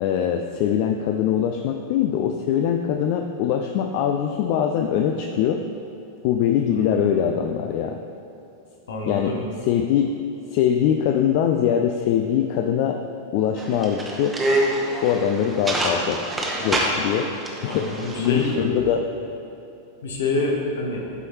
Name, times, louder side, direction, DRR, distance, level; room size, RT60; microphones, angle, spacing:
voice 1, 0.0-5.7 6.2-8.0 9.1-10.1 10.5-13.0 13.3-14.4 15.0-16.3 16.6-17.3 17.6-19.1, left 9 dB, 45° left, 5 dB, 0.3 m, -22 dB
voice 2, 6.7-7.1 8.9-9.4 17.7-18.8 20.0-21.0, left 2 dB, 65° left, 0 dB, 1.1 m, -26 dB
sound 1, 13.6-18.5, right 1 dB, 15° right, 0.9 m, -26 dB
11.5 x 4.7 x 2.9 m, 2.9 s
figure-of-eight pair, 90°, 0 cm